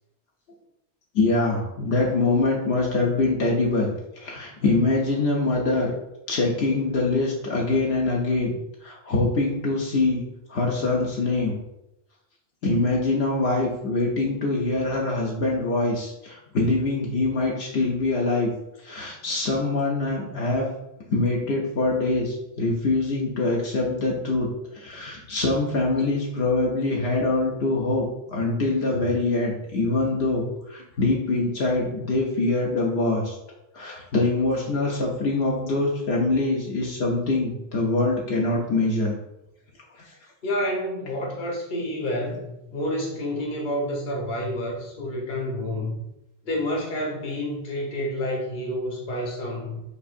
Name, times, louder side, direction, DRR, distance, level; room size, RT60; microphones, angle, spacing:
voice 1, 1.1-5.9 6.3-8.5 8.8-10.2 10.5-11.6 12.6-18.5 18.8-20.8 21.1-33.3 33.7-39.2 40.1-40.2, left 2 dB, 75° left, -2 dB, 1.0 m, -24 dB
voice 2, 40.4-46.0 46.4-49.8, left 1 dB, 50° left, -2 dB, 1.1 m, -29 dB
6.6 x 2.6 x 2.5 m, 0.88 s
omnidirectional pair, 1.1 m